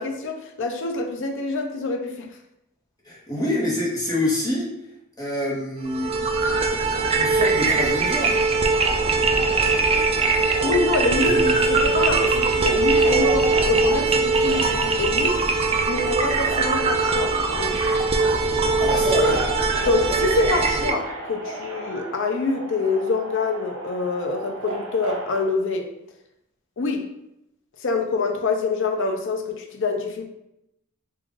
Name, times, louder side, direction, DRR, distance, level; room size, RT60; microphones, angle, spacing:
voice 1, 0.0-2.3 10.6-15.4 15.8-17.8 19.8-25.9 26.8-27.0 27.8-30.3, left 3 dB, 60° left, 4 dB, 0.5 m, -26 dB
voice 2, 3.0-4.7 5.2-6.2 7.1-8.4 11.1-11.5 18.8-19.4, left 1 dB, 15° left, -6 dB, 0.9 m, -26 dB
sound 1, 5.9-20.9, right 3 dB, 25° right, 0.3 m, -21 dB
Subway metro underground, 6.5-25.4, right 2 dB, 85° right, 0.9 m, -35 dB
3.5 x 2.4 x 3.7 m, 0.84 s
head